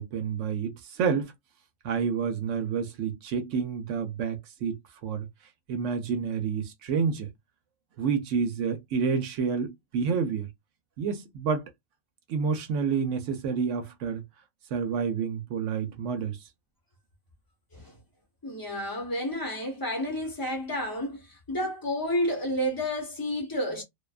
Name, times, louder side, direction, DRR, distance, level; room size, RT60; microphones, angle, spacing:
voice 1, 0.0-1.3 1.8-5.3 5.7-7.3 8.0-10.5 11.0-11.6 12.3-14.2 14.7-16.4, right 6 dB, 70° right, 0.9 m, -29 dB
voice 2, 18.4-23.8, equal, 20° left, 0.7 m, -30 dB
2.5 x 2.2 x 2.3 m
omnidirectional pair, 1.4 m